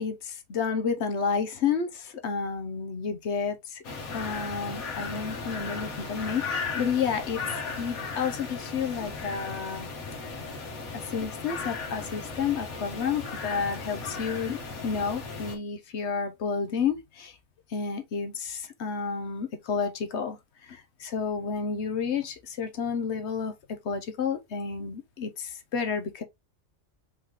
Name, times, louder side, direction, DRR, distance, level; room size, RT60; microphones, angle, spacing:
voice 1, 0.0-3.8 4.1-7.4 7.8-9.9 10.9-17.3 17.7-20.4 20.6-23.5 23.8-26.2, left 6 dB, 60° left, 1.0 m, -31 dB
sound 1, 3.8-15.6, left 4 dB, 85° left, 1.8 m, -36 dB
4.8 x 3.5 x 3.0 m
omnidirectional pair, 1.4 m